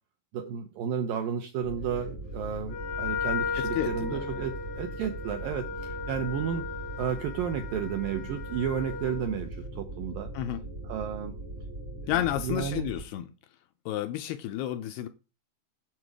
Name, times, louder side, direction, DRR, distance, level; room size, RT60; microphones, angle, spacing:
voice 1, 0.3-6.6 7.0-10.3 10.9-11.3 12.0-12.1 12.4-12.9, right 8 dB, 75° right, 6 dB, 2.1 m, -32 dB
sound 1, 1.6-13.0, right 1 dB, 20° right, 3.2 m, -40 dB
Wind instrument woodwind instrument, 2.7-9.3, left 5 dB, 65° left, 3.8 m, -36 dB
voice 2, 3.6-4.4 10.3-10.6 12.1-13.3 13.9-15.1, left 12 dB, 80° left, 9 dB, 2.4 m, -31 dB
9.4 x 6.9 x 4.9 m, 0.31 s
omnidirectional pair, 5.2 m